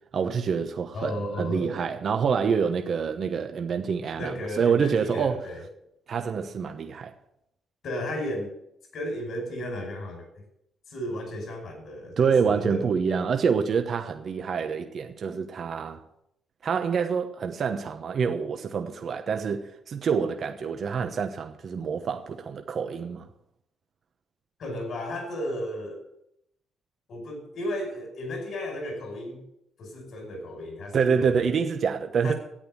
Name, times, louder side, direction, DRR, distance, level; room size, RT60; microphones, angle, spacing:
voice 1, 0.1-5.5 6.1-7.1 12.2-16.0 16.6-23.3 30.9-32.3, right 6 dB, 55° right, 1.0 m, -26 dB
voice 2, 0.9-1.8 4.2-5.6 7.8-8.5 8.9-10.3 10.9-12.9 24.6-26.0 27.1-29.4 29.8-31.5 32.2-32.3, left 1 dB, 60° left, 5.2 m, -34 dB
10.0 x 8.6 x 7.7 m
cardioid pair, 90°, 0 cm